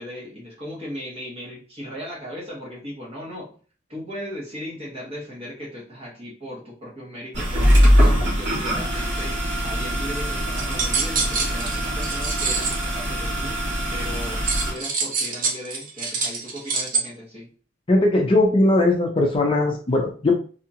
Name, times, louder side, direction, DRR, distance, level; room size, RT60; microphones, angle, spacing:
voice 1, 0.0-3.5 3.9-13.5 13.9-17.5, equal, 30° right, -5 dB, 1.2 m, -37 dB
sound 1, 7.3-14.7, equal, 75° right, 1.5 m, -22 dB
sound 2, 10.6-12.8 14.4-17.0, right 4 dB, 50° right, 0.5 m, -26 dB
voice 2, 17.9-20.3, left 2 dB, 30° left, 1 dB, 0.4 m, -19 dB
2.7 x 2.4 x 2.8 m, 0.40 s
head